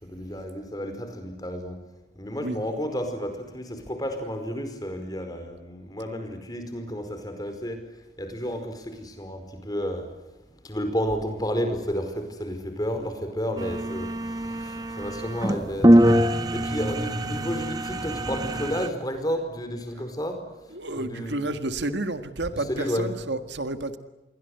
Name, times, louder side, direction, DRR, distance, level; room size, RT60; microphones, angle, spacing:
voice 1, 0.0-1.8 2.1-7.8 8.2-10.1 10.5-20.4 20.7-21.3 22.5-23.1, equal, 20° left, 6 dB, 4.9 m, -31 dB
sound 1, 13.6-18.9, equal, 20° right, 1.4 m, -23 dB
voice 2, 20.7-24.0, right 2 dB, 75° right, 9 dB, 1.8 m, -30 dB
29.0 x 22.5 x 8.1 m, 1.1 s
head